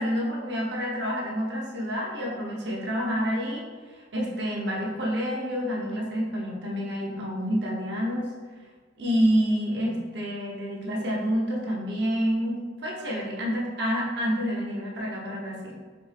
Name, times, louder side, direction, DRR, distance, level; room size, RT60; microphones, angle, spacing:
voice 1, 0.0-3.6 4.1-8.3 9.0-15.8, equal, 65° right, -3 dB, 0.9 m, -28 dB
4.3 x 3.2 x 3.3 m, 1.5 s
head